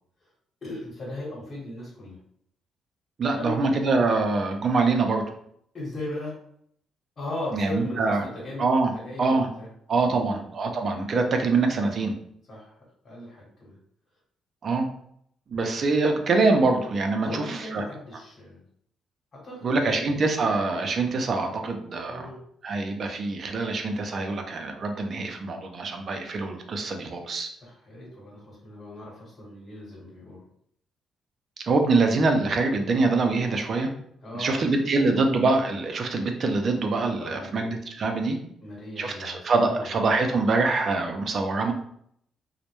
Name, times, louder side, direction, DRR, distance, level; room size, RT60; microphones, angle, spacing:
voice 1, 0.6-2.2 3.4-3.7 5.7-6.4 7.2-8.7 8.9-9.7 10.1-10.4 12.5-12.8 13.0-13.8 17.2-18.6 19.3-20.1 22.1-22.4 27.6-30.4 34.2-34.7 35.0-35.1 37.2-37.7 38.6-39.9, left 1 dB, 40° left, -5 dB, 1.0 m, -37 dB
voice 2, 3.2-5.2 7.5-8.3 8.6-8.9 9.2-9.5 9.9-12.1 14.6-14.9 15.5-17.8 19.6-22.3 22.6-27.5 31.6-33.9 34.3-38.4 39.0-41.7, right 3 dB, 50° right, 4 dB, 0.4 m, -24 dB
2.1 x 2.0 x 2.9 m, 0.69 s
cardioid pair, 90°, 0 cm